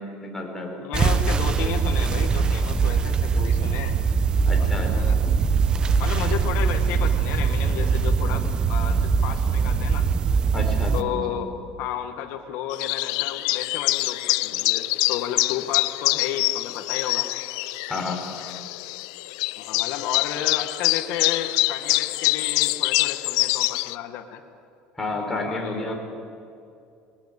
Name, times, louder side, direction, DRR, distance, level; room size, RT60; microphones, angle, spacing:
voice 1, 0.0-0.8 4.5-5.1 10.5-11.4 17.9-18.2 25.0-26.0, left 2 dB, 10° left, 0 dB, 4.3 m, -31 dB
voice 2, 0.8-4.0 4.6-5.2 6.0-10.1 10.9-11.5 11.8-17.3 19.6-24.4 25.5-26.0, left 10 dB, 65° left, 4 dB, 1.7 m, -32 dB
sound 1, 0.9-11.0, right 5 dB, 25° right, 0.9 m, -22 dB
sound 2, 12.7-24.0, left 23 dB, 90° left, 0.4 m, -25 dB
21.0 x 19.5 x 8.3 m, 2.5 s
cardioid pair, 140°, 3 cm